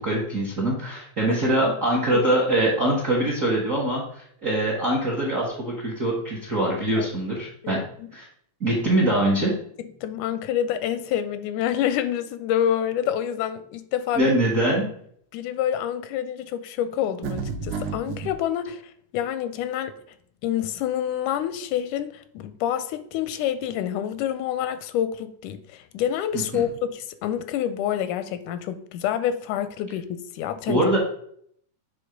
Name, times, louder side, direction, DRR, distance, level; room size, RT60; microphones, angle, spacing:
voice 1, 0.0-7.8 8.1-8.3 8.6-9.5 14.2-14.9 26.3-26.6 30.7-31.0, right 1 dB, 50° right, 0.9 m, -23 dB
voice 2, 1.3-1.7 2.1-2.2 7.0-7.1 7.6-8.1 9.8-14.3 15.3-18.8 19.1-19.9 20.4-30.8, left 10 dB, 85° left, 2.1 m, -27 dB
sound 1, 17.2-18.3, right 5 dB, 80° right, 2.2 m, -30 dB
7.9 x 3.5 x 5.0 m
omnidirectional pair, 3.5 m